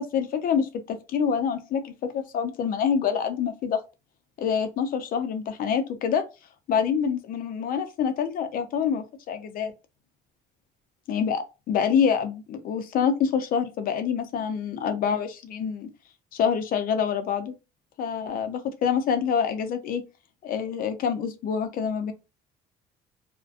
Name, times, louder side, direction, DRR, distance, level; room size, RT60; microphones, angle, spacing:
voice 1, 0.0-3.8 4.4-6.2 6.7-9.7 11.1-15.9 16.3-17.5 18.0-20.0 20.4-22.1, left 7 dB, 60° left, 0.5 m, -26 dB
2.5 x 2.2 x 2.3 m
cardioid pair, 110°, 17 cm